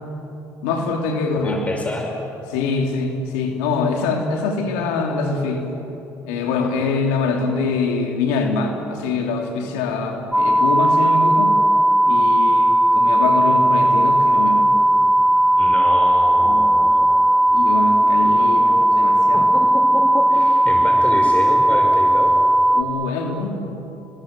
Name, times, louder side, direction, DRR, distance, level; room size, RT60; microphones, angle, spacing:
voice 1, 0.6-1.6 2.5-5.6 6.3-11.5 12.0-14.7 16.4-16.6 17.5-19.4 22.7-23.5, left 4 dB, 90° left, 2 dB, 3.0 m, -24 dB
voice 2, 1.3-2.1 15.6-17.3 18.4-18.9 19.3-22.3, left 2 dB, 20° left, 1 dB, 5.6 m, -28 dB
sound 1, 10.3-22.8, right 1 dB, 5° right, 3.1 m, -16 dB
29.5 x 22.0 x 7.7 m, 3.0 s
supercardioid pair, 70°, 8 cm